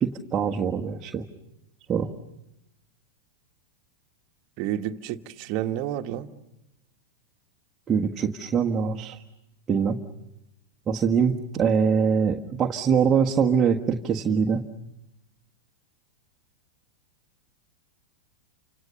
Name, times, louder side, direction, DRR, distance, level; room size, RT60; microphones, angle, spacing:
voice 1, 0.0-1.2 1.9-2.1 7.9-9.2 9.7-10.0 10.9-14.6, right 6 dB, 25° right, 0 dB, 1.6 m, -23 dB
voice 2, 4.6-6.3, right 11 dB, 45° right, 7 dB, 1.5 m, -30 dB
29.5 x 26.5 x 6.9 m, 0.91 s
hypercardioid pair, 105°, 0 cm